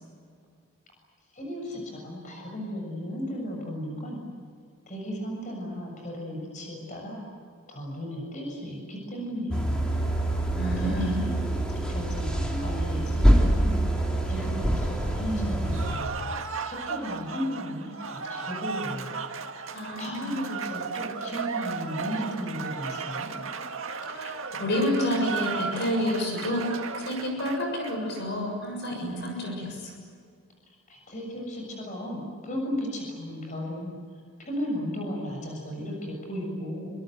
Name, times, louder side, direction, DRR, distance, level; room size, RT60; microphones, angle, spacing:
voice 1, 1.3-4.2 4.9-7.2 7.7-9.8 10.8-11.3 11.7-13.8 14.3-16.0 16.6-19.1 19.9-23.4 30.9-36.9, equal, 35° left, 1 dB, 7.1 m, -35 dB
sound 1, 9.5-16.0, right 1 dB, 5° left, 3.5 m, -25 dB
voice 2, 10.6-11.2 19.7-20.3 24.1-29.9, left 1 dB, 50° left, 1 dB, 6.9 m, -29 dB
Cheering / Applause, 15.6-28.2, right 5 dB, 65° right, 1.9 m, -35 dB
28.0 x 26.0 x 8.0 m, 2.1 s
head